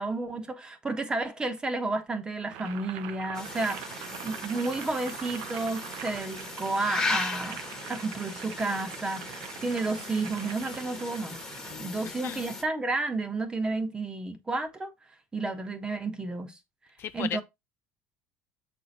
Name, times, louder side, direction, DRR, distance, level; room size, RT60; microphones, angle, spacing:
voice 1, 0.0-7.6 7.9-11.4 11.8-14.9 15.3-16.6 17.1-17.4, right 3 dB, 15° right, 1.2 m, -31 dB
Boiling, 2.4-11.8, right 11 dB, 85° right, 0.9 m, -43 dB
sound 1, 3.3-12.6, left 3 dB, 10° left, 1.4 m, -37 dB
voice 2, 11.7-12.4 17.0-17.4, left 9 dB, 45° left, 0.4 m, -36 dB
7.1 x 4.5 x 4.2 m
cardioid pair, 140°, 6 cm